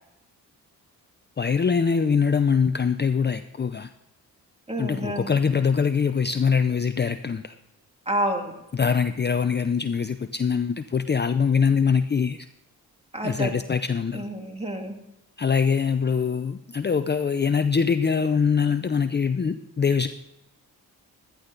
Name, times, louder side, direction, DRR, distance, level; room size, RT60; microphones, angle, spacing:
voice 1, 1.4-3.9 4.8-7.5 8.7-12.5 13.2-14.3 15.4-20.1, left 6 dB, 30° left, 10 dB, 0.6 m, -23 dB
voice 2, 4.7-5.3 8.1-8.5 13.1-13.6 14.1-15.0, right 1 dB, 15° right, 3 dB, 2.3 m, -29 dB
13.0 x 11.0 x 3.9 m, 0.88 s
cardioid pair, 60°, 37 cm